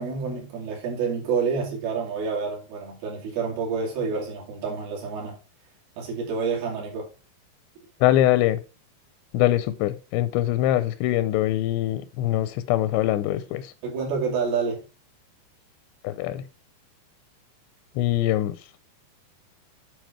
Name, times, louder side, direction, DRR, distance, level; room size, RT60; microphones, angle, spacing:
voice 1, 0.0-5.4 6.0-7.1 13.8-14.8, right 5 dB, 60° right, 4.3 m, -28 dB
voice 2, 8.0-8.6 9.3-13.7 16.0-16.4 18.0-18.6, left 14 dB, 85° left, 2.8 m, -23 dB
9.2 x 4.8 x 4.4 m
omnidirectional pair, 5.0 m